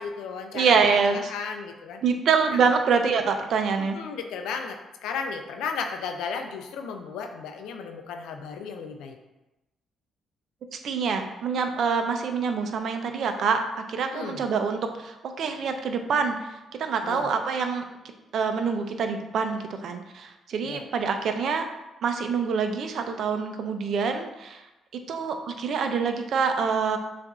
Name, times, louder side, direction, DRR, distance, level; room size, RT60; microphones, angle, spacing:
voice 1, 0.0-0.8 1.1-2.0 2.5-2.6 3.8-9.2 14.0-14.4 17.0-17.3 20.6-20.8, left 5 dB, 90° left, 5 dB, 0.4 m, -34 dB
voice 2, 0.5-1.3 2.0-4.0 10.7-13.6 13.9-16.4 16.8-17.8 18.3-21.7 22.0-24.6 25.1-27.0, right 5 dB, 65° right, 6 dB, 0.5 m, -25 dB
6.9 x 2.5 x 2.4 m, 0.99 s
cardioid pair, 90°, 0 cm